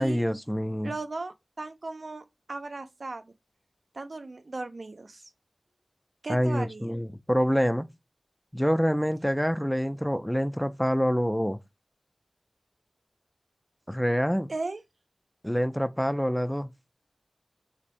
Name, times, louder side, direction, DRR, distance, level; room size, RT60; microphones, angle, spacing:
voice 1, 0.0-0.9 6.3-7.9 8.5-11.6 13.9-14.5 15.4-16.7, equal, 5° left, 0.3 m, -26 dB
voice 2, 0.8-3.3 3.9-5.2 6.2-6.9 14.5-14.8, right 3 dB, 65° right, 0.4 m, -37 dB
2.6 x 2.5 x 4.2 m
wide cardioid pair, 70°, 0 cm